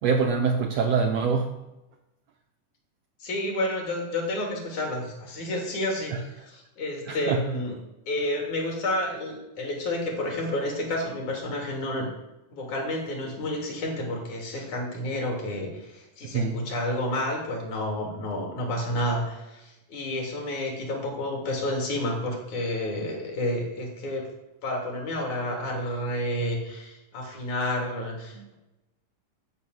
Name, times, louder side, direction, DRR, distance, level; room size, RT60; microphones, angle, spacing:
voice 1, 0.0-1.6 7.1-7.4 16.3-16.6 28.4-28.5, right 5 dB, 70° right, 4 dB, 1.6 m, -24 dB
voice 2, 3.2-7.7 8.1-12.1 12.5-24.2 24.6-28.5, left 1 dB, 60° left, 0 dB, 4.2 m, -30 dB
12.5 x 6.1 x 7.8 m, 0.98 s
omnidirectional pair, 3.8 m